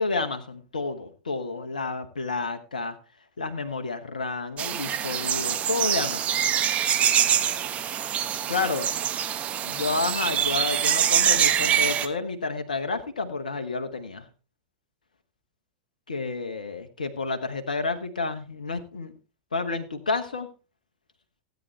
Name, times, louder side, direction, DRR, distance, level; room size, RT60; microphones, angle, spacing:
voice 1, 0.0-3.0 3.4-6.4 8.5-8.9 9.6-14.2 16.1-19.1 19.5-20.5, left 3 dB, 75° left, 9 dB, 1.2 m, -30 dB
sound 1, 4.6-12.1, right 9 dB, 30° right, 1.2 m, -24 dB
16.0 x 9.2 x 3.2 m, 0.32 s
figure-of-eight pair, 85°, 4 cm